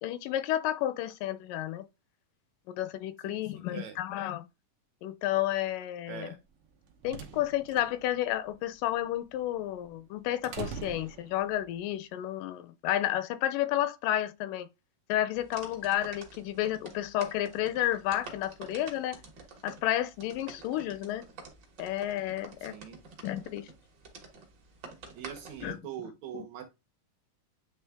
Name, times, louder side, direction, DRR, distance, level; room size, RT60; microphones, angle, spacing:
voice 1, 0.0-1.8 2.7-4.4 5.0-6.3 7.0-14.7 15.1-19.2 19.6-21.2 21.8-22.7 23.2-23.7 25.6-25.8 26.3-26.5, left 13 dB, 85° left, 2.2 m, -31 dB
voice 2, 3.2-4.0 6.1-6.4 22.7-23.0 25.1-26.6, right 9 dB, 70° right, 1.8 m, -42 dB
sound 1, 6.5-11.8, right 6 dB, 85° right, 1.2 m, -45 dB
sound 2, 15.3-25.8, right 4 dB, 50° right, 1.4 m, -49 dB
8.9 x 3.1 x 3.4 m
omnidirectional pair, 3.8 m